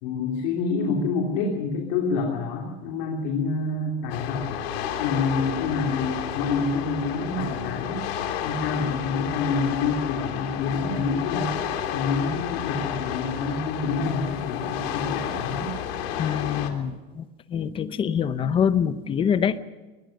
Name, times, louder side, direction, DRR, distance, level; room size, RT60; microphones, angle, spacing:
voice 1, 0.0-4.6 5.0-8.0 8.4-11.5 11.9-15.7, left 4 dB, 55° left, 1 dB, 3.1 m, -27 dB
sound 1, 4.1-16.7, left 9 dB, 80° left, 3.0 m, -31 dB
voice 2, 16.2-17.2 17.5-19.6, left 8 dB, 15° left, 13 dB, 0.7 m, -25 dB
23.5 x 20.0 x 6.5 m, 1.2 s
supercardioid pair, 170°, 30 cm